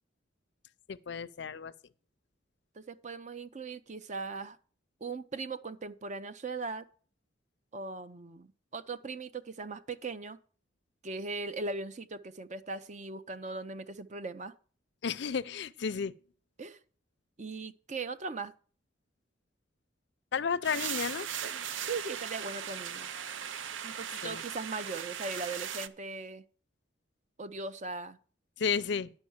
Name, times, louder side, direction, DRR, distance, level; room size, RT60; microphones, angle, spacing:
voice 1, 0.9-1.7 15.0-16.1 20.3-21.3 24.2-24.4 28.6-29.1, left 6 dB, 65° left, 0.5 m, -32 dB
voice 2, 2.7-4.6 5.0-6.9 7.7-8.5 8.7-10.4 11.0-14.5 16.6-16.8 17.4-18.5 21.9-23.1 23.8-26.4 27.4-28.2, right 3 dB, 40° right, 0.6 m, -39 dB
sound 1, 20.6-25.9, right 8 dB, 80° right, 0.6 m, -38 dB
10.5 x 5.5 x 7.1 m
head